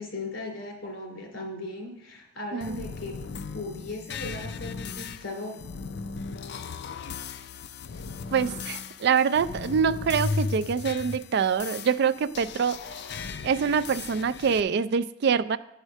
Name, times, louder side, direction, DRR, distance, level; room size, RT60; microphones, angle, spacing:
voice 1, 0.0-3.2 3.5-5.6, left 2 dB, 75° left, 0 dB, 2.5 m, -37 dB
sound 1, 2.6-14.6, left 4 dB, 55° left, 0.4 m, -36 dB
voice 2, 8.3-12.8 13.4-15.6, right 6 dB, 55° right, 15 dB, 0.4 m, -25 dB
9.4 x 4.9 x 6.3 m, 0.84 s
head